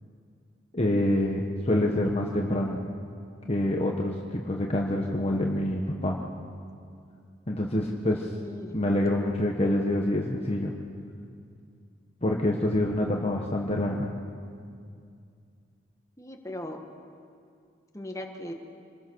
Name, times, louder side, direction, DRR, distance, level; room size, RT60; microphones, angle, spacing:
voice 1, 0.7-2.8 3.5-6.2 7.5-8.2 8.7-10.7 12.2-14.1, left 1 dB, 35° left, 0 dB, 1.3 m, -26 dB
voice 2, 8.1-8.8 16.2-16.8 17.9-18.5, left 1 dB, 15° left, 3 dB, 1.7 m, -39 dB
26.5 x 20.5 x 6.3 m, 2.3 s
head